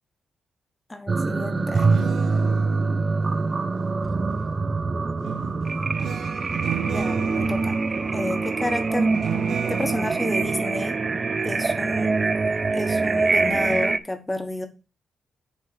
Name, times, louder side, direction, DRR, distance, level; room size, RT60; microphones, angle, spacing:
voice 1, 0.9-2.0 6.9-7.8 8.1-9.1 9.7-10.9 11.4-12.1 12.7-14.7, left 2 dB, 15° left, 7 dB, 1.2 m, -30 dB
sound 1, 1.1-14.0, right 3 dB, 30° right, 0.5 m, -24 dB
sound 2, 1.6-4.5 5.2-12.2 12.5-12.9, right 9 dB, 80° right, 0.6 m, -33 dB
7.3 x 4.0 x 6.6 m, 0.32 s
cardioid pair, 130°, 0 cm